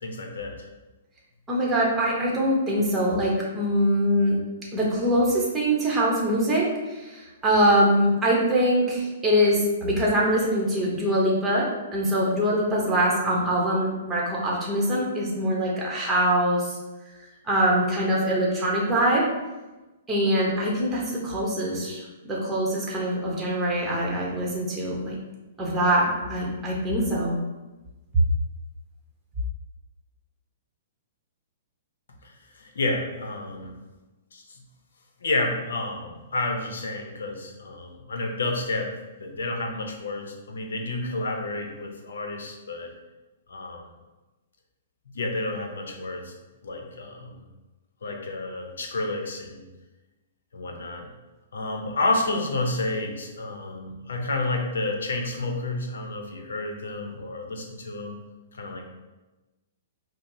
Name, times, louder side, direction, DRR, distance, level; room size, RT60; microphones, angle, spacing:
voice 1, 0.0-0.7 32.6-33.7 34.3-34.6 35.2-38.9 39.2-42.9 43.5-43.8 45.1-46.3 46.6-47.4 48.0-49.6 50.5-51.1 51.5-58.2 58.5-58.9, left 2 dB, 85° left, 3 dB, 0.6 m, -30 dB
voice 2, 1.5-4.4 4.7-11.6 11.9-16.7 17.4-19.2 20.1-22.0 22.3-25.1 25.6-27.4, equal, 10° right, -4 dB, 0.8 m, -23 dB
5.1 x 2.0 x 2.6 m, 1.1 s
hypercardioid pair, 145°, 0 cm